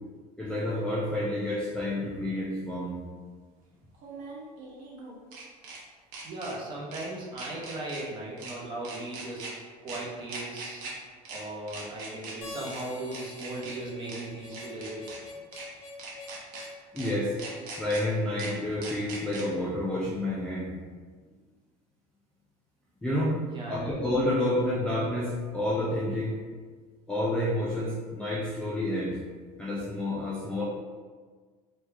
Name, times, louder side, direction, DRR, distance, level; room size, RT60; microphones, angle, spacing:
voice 1, 0.4-3.0 16.9-17.4 17.8-20.7 23.0-23.4 23.7-26.4 27.1-29.2 29.6-30.6, left 1 dB, 5° left, -7 dB, 0.3 m, -29 dB
sound 1, 1.5-1.6 3.9-5.8 6.1-6.5 6.9-7.1 7.4-8.0 8.4-8.5 8.8-9.5 9.9-10.0 10.3-10.9 11.2-11.4 11.7-12.3 12.7-12.8 13.1-13.7 14.1-14.2 14.5-15.2 15.5-15.7 16.0-16.6 17.0-17.1 17.4-18.0 18.4-18.5 18.8-19.4, right 4 dB, 65° right, 0.8 m, -41 dB
voice 2, 6.2-9.5 9.8-10.8 11.3-15.1 23.5-24.0, right 2 dB, 30° right, -4 dB, 0.8 m, -37 dB
Harmonica, 12.4-17.6, left 3 dB, 70° left, 1.1 m, -45 dB
3.1 x 2.3 x 3.4 m, 1.5 s
cardioid pair, 155°, 16 cm